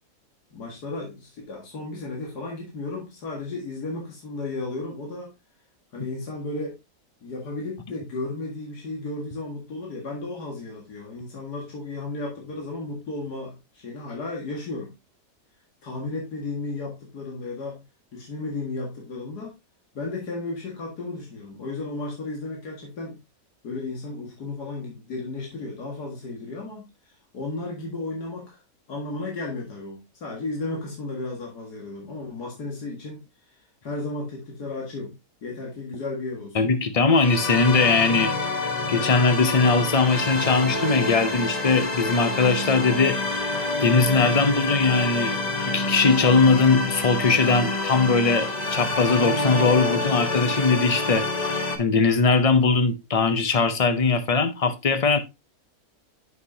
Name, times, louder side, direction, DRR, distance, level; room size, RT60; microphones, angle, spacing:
voice 1, 0.5-5.3 5.9-6.8 7.2-14.9 15.8-17.8 18.1-19.6 19.9-23.2 23.6-26.9 27.3-28.6 28.9-33.2 33.8-35.1 35.4-36.7, left 2 dB, 90° left, 2.4 m, -34 dB
voice 2, 36.5-38.3 38.9-43.2 43.8-45.4 45.7-55.2, left 4 dB, 65° left, 0.3 m, -20 dB
sound 1, 37.1-51.8, left 2 dB, 30° left, 1.1 m, -27 dB
9.5 x 5.7 x 2.7 m
omnidirectional pair, 1.6 m